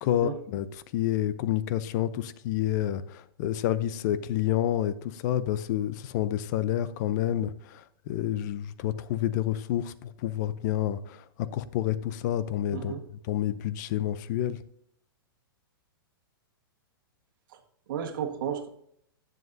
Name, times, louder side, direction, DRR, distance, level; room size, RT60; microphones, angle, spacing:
voice 1, 0.0-0.7 0.9-12.9 13.3-14.6, left 12 dB, 50° left, 15 dB, 0.6 m, -29 dB
voice 2, 12.7-13.0 17.5-17.6 17.9-18.7, right 8 dB, 60° right, 4 dB, 1.5 m, -33 dB
10.5 x 7.4 x 2.7 m, 0.71 s
hypercardioid pair, 130°, 12 cm